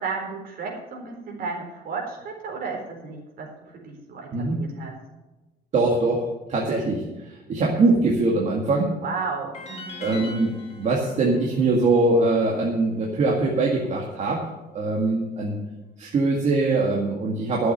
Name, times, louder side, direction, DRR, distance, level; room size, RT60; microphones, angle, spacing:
voice 1, 0.0-4.9 9.0-10.2, right 4 dB, 55° right, 0 dB, 4.1 m, -33 dB
voice 2, 5.7-6.2 6.5-8.9 10.0-14.4 14.7-15.6 16.0-17.7, right 3 dB, 40° right, -2 dB, 2.0 m, -22 dB
sound 1, 9.5-12.7, left 3 dB, 40° left, 3.7 m, -42 dB
12.5 x 7.8 x 7.8 m, 1.1 s
cardioid pair, 170°, 18 cm